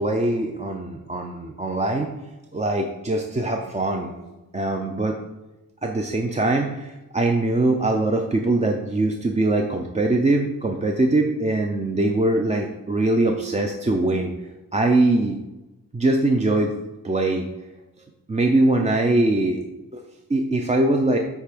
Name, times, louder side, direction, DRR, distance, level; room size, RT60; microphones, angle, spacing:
voice 1, 0.0-2.1 2.5-4.2 4.5-5.2 5.8-14.3 14.7-15.4 15.9-16.7 17.0-17.5 18.3-19.6 19.9-20.0 20.3-21.2, right 2 dB, 20° right, 2 dB, 0.4 m, -22 dB
8.1 x 3.3 x 6.0 m, 1.0 s
wide cardioid pair, 180°, 34 cm